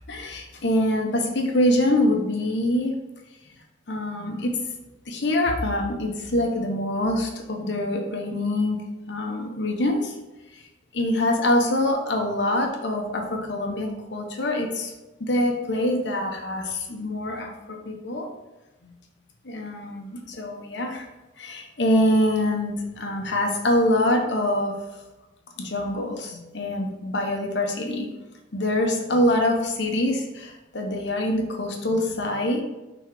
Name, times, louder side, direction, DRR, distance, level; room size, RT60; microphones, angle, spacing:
voice 1, 0.1-2.9 3.9-4.6 5.1-8.8 9.1-10.1 10.5-10.6 10.9-14.9 15.2-18.3 18.8-19.0 19.4-21.1 21.4-24.7 25.6-28.1 28.5-32.6, left 1 dB, 65° left, 2 dB, 1.0 m, -25 dB
6.0 x 4.0 x 4.7 m, 1.1 s
head